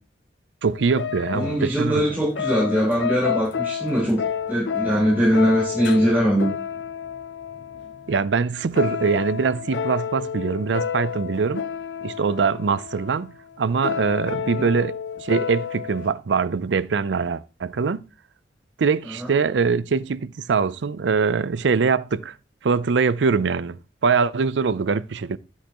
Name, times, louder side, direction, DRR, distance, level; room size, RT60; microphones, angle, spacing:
sound 1, 0.6-16.1, left 7 dB, 80° left, 0.6 m, -30 dB
voice 1, 0.6-2.0 8.1-11.7 12.0-15.0 15.2-18.0 18.8-22.3 22.6-25.4, right 5 dB, 80° right, 0.5 m, -23 dB
voice 2, 1.3-4.2 4.5-6.5 14.5-14.7 19.2-19.3, equal, 10° right, 4.9 m, -21 dB
12.5 x 8.2 x 3.0 m
head